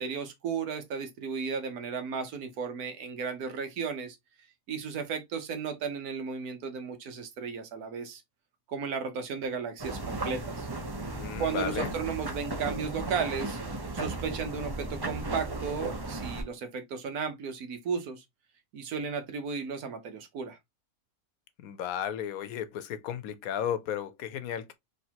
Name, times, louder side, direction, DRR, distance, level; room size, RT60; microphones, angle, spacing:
voice 1, 0.0-4.2 4.7-8.2 8.7-10.7 11.4-13.6 13.9-18.2 18.7-20.6, right 6 dB, 90° right, 1.4 m, -34 dB
sound 1, 9.8-16.4, right 2 dB, 30° right, 0.4 m, -35 dB
voice 2, 11.1-11.9 21.6-24.7, left 9 dB, 75° left, 1.1 m, -34 dB
4.3 x 3.4 x 2.8 m
omnidirectional pair, 1.5 m